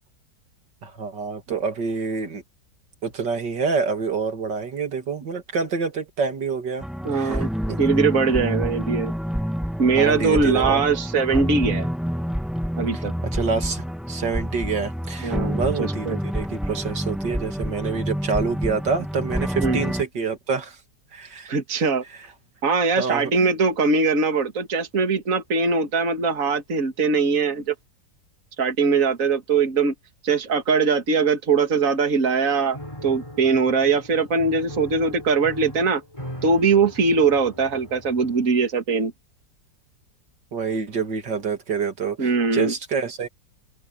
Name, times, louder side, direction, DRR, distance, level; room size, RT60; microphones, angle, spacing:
voice 1, 0.8-2.4 3.0-6.9 7.1-7.8 9.9-10.8 12.9-13.0 13.3-20.8 21.1-21.5 23.0-23.5 40.5-43.3, right 5 dB, 75° right, 2.8 m, -27 dB
sound 1, 6.8-20.0, equal, ahead, 1.0 m, -28 dB
voice 2, 7.0-7.5 7.8-9.1 9.8-11.9 12.8-13.1 15.2-16.2 19.6-19.8 21.5-22.0 22.6-27.7 28.6-29.9 30.2-36.0 36.4-39.1 42.2-42.7, right 4 dB, 45° right, 2.4 m, -21 dB
Piano, 32.7-38.6, equal, 15° left, 3.6 m, -40 dB
omnidirectional pair, 1.9 m